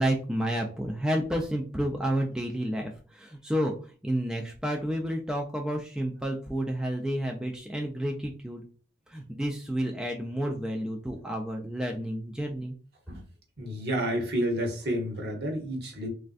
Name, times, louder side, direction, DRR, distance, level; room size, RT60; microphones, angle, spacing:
voice 1, 0.0-3.7 4.0-8.6 9.1-12.7, equal, 5° right, 1 dB, 0.3 m, -30 dB
voice 2, 13.6-16.1, equal, 60° right, 1 dB, 1.0 m, -30 dB
3.3 x 2.5 x 2.4 m, 0.39 s
head